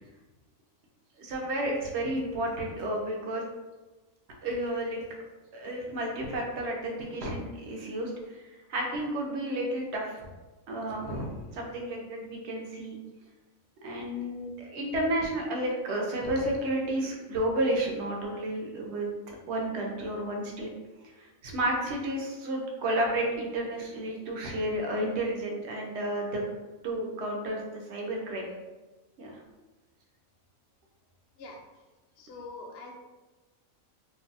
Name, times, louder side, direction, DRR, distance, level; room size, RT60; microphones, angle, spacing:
voice 1, 1.2-3.4 4.4-5.0 5.5-10.1 10.7-13.0 13.8-20.7 21.2-26.4 26.8-28.5 29.2-29.4, right 1 dB, 60° right, 0 dB, 0.9 m, -31 dB
voice 2, 31.4-31.8 32.2-32.9, left 3 dB, 60° left, 0 dB, 0.7 m, -44 dB
2.6 x 2.2 x 3.9 m, 1.2 s
omnidirectional pair, 1.5 m